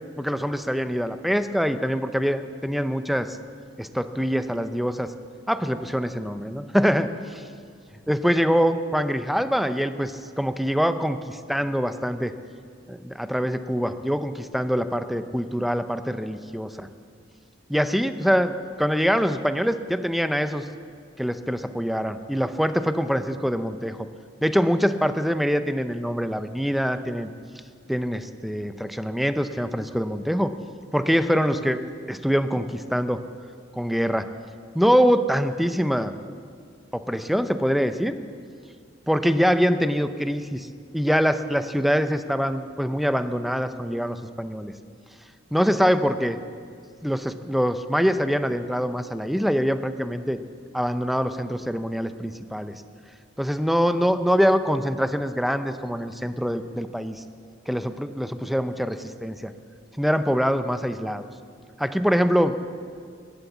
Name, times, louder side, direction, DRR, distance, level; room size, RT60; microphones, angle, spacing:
voice 1, 0.2-3.4 3.8-5.1 5.5-7.1 8.1-12.3 12.9-16.9 17.7-20.6 21.2-24.0 24.4-27.3 27.9-30.5 30.9-31.8 32.1-33.2 33.7-34.3 34.7-36.1 36.9-38.1 39.1-40.7 40.9-44.7 45.5-46.4 47.0-50.4 50.7-52.7 53.4-57.2 57.7-59.5 60.0-61.3 61.8-62.6, equal, ahead, 10 dB, 0.6 m, -24 dB
16.5 x 12.0 x 7.2 m, 2.2 s
head